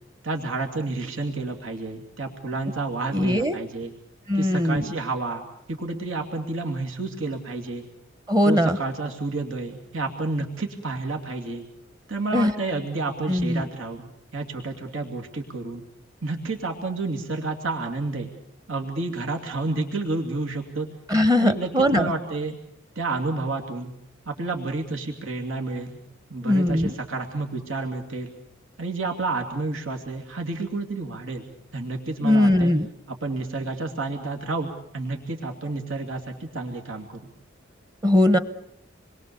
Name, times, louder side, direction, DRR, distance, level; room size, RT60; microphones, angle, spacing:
voice 1, 0.2-3.9 4.3-7.8 8.4-11.6 12.1-15.8 16.2-18.3 18.7-20.9 21.4-22.6 23.0-23.9 24.3-26.0 26.3-28.3 28.8-31.5 31.7-32.7 33.1-37.1, right 3 dB, 90° right, 2 dB, 2.8 m, -30 dB
voice 2, 3.1-3.6 4.3-4.9 8.3-8.8 12.3-12.5 13.3-13.7 21.1-22.1 26.4-26.9 32.2-32.9 38.0-38.4, left 1 dB, 20° right, 12 dB, 0.9 m, -20 dB
28.0 x 22.0 x 7.0 m, 0.75 s
head